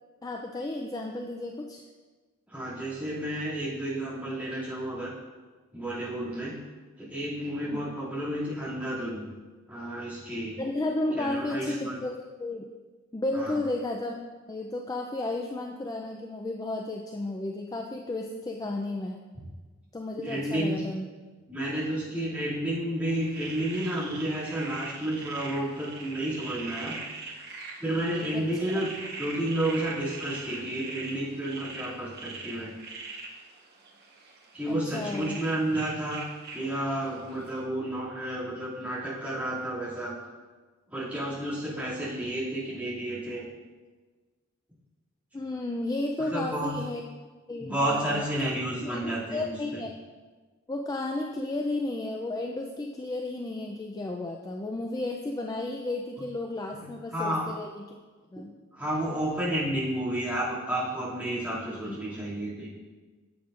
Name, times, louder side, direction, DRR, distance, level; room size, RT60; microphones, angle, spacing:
voice 1, 0.2-1.8 7.7-7.8 10.6-12.6 13.1-14.1 14.5-19.2 19.9-21.1 28.3-28.5 34.7-35.4 45.3-47.0 47.5-48.3 48.8-49.9 50.7-57.8 58.3-58.5 61.8-62.0, left 2 dB, 20° left, 2 dB, 0.4 m, -33 dB
voice 2, 2.5-5.1 5.7-6.6 7.0-9.3 9.7-10.6 11.2-12.0 13.3-13.6 20.2-20.8 21.5-27.0 27.8-28.9 29.2-32.7 34.5-36.2 36.5-40.2 40.9-43.5 46.2-46.8 47.6-49.8 56.7-57.5 58.7-62.7, right 1 dB, 5° right, -9 dB, 2.3 m, -31 dB
sound 1, 23.1-37.6, right 3 dB, 50° right, 1.0 m, -42 dB
9.3 x 7.9 x 2.5 m, 1.3 s
head